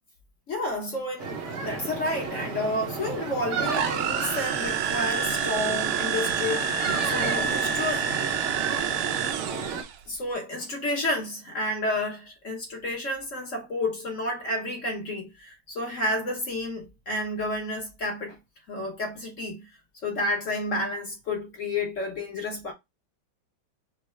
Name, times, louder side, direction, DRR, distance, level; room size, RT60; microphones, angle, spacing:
voice 1, 0.5-8.1 10.1-18.4 18.7-19.7 20.0-22.7, left 1 dB, 50° left, 1.0 m, -30 dB
sound 1, 1.2-9.8, right 5 dB, 50° right, 0.9 m, -32 dB
sound 2, 3.6-10.0, right 7 dB, 75° right, 1.2 m, -28 dB
5.5 x 2.0 x 3.1 m
omnidirectional pair, 2.2 m